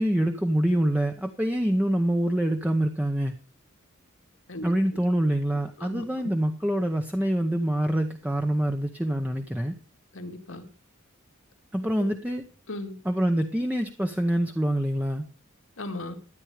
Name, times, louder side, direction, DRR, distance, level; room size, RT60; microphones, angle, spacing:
voice 1, 0.0-3.3 4.6-9.8 11.7-12.4 13.0-15.3, right 1 dB, 5° right, 5 dB, 0.8 m, -25 dB
voice 2, 5.8-6.3 10.1-10.7 12.0-12.1 12.7-13.0 15.8-16.2, left 2 dB, 80° left, 4 dB, 2.3 m, -37 dB
13.5 x 9.1 x 5.0 m, 0.38 s
head